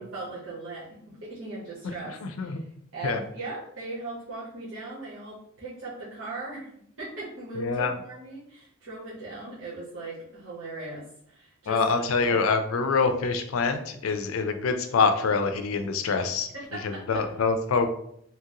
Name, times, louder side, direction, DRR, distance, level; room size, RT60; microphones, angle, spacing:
voice 1, 0.0-2.6 2.9-12.5 14.0-14.1 16.5-17.2, right 2 dB, 80° right, -8 dB, 1.0 m, -39 dB
voice 2, 2.2-2.6 3.0-3.2 7.6-7.9 11.7-16.5 16.8-17.9, left 4 dB, 80° left, 7 dB, 0.4 m, -25 dB
2.9 x 2.4 x 2.9 m, 0.70 s
head